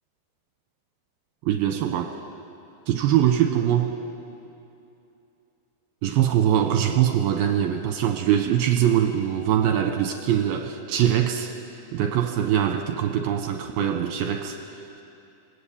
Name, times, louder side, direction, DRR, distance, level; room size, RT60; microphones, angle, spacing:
voice 1, 1.4-2.2 2.9-3.9 6.0-11.5 11.9-14.6, right 10 dB, 75° right, 5 dB, 2.7 m, -22 dB
28.0 x 19.0 x 8.6 m, 2.8 s
omnidirectional pair, 4.9 m